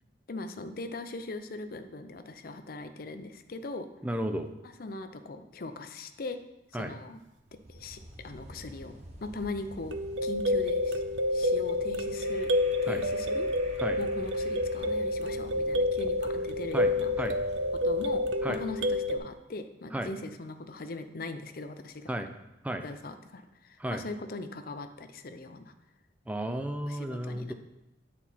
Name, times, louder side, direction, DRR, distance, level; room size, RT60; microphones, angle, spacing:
voice 1, 0.3-3.9 4.6-6.4 6.7-7.2 7.7-8.9 9.2-10.0 10.2-11.0 11.3-12.5 12.8-17.1 17.8-22.1 22.8-25.7 26.9-27.5, left 2 dB, 50° left, 8 dB, 0.5 m, -40 dB
voice 2, 4.0-4.5 6.7-6.9 12.9-13.0 13.8-14.0 16.7-16.9 17.2-17.4 18.4-18.6 19.9-20.1 22.1-22.3 22.6-22.8 23.8-24.0 26.3-27.5, right 1 dB, 10° right, 6 dB, 0.4 m, -33 dB
sound 1, 7.4-19.4, right 1 dB, 35° right, 0.9 m, -48 dB
sound 2, 9.9-19.2, left 1 dB, 70° right, 0.5 m, -29 dB
9.2 x 4.3 x 4.2 m, 0.93 s
head